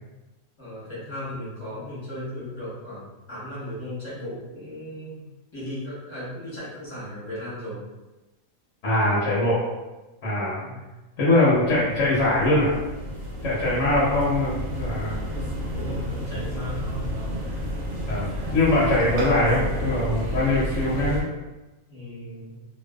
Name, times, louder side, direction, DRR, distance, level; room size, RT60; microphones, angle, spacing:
voice 1, 0.6-5.2 5.5-7.8 10.6-10.8 13.8-14.3 15.3-17.2 21.9-22.6, left 1 dB, 25° left, -10 dB, 0.8 m, -36 dB
voice 2, 8.8-9.7 10.2-10.6 11.2-12.7 13.4-15.2 18.1-21.2, left 1 dB, 65° left, -8 dB, 1.0 m, -22 dB
sound 1, 11.4-21.2, equal, 65° right, 0.8 m, -31 dB
2.5 x 2.2 x 2.2 m, 1.1 s
omnidirectional pair, 1.5 m